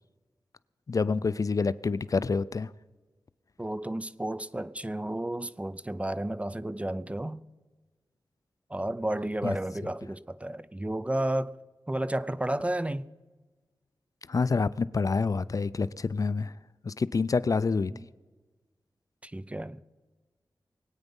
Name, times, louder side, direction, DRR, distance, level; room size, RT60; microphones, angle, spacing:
voice 1, 0.9-2.7 9.4-9.6 14.3-16.6 16.8-17.9, left 4 dB, 45° left, 0.4 m, -27 dB
voice 2, 3.6-7.4 8.7-11.5 11.9-13.0 19.2-19.8, right 1 dB, 15° right, 0.5 m, -32 dB
23.0 x 9.1 x 5.4 m
wide cardioid pair, 80°, 8 cm